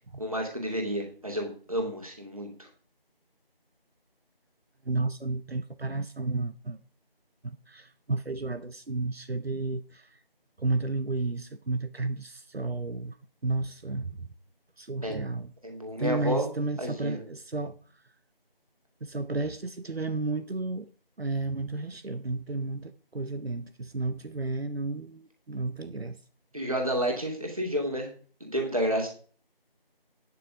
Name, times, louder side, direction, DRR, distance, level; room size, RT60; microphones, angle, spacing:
voice 1, 0.2-2.7 15.0-15.2 15.6-16.5 16.8-17.2 26.5-28.1 28.4-29.1, equal, 35° right, 2.6 m, -30 dB
voice 2, 4.9-6.8 7.4-10.1 10.6-13.2 13.4-14.3 14.8-15.5 16.0-17.8 19.0-20.9 21.2-26.2, right 3 dB, 85° right, 0.9 m, -32 dB
9.9 x 6.7 x 5.1 m
figure-of-eight pair, 175°, 30 cm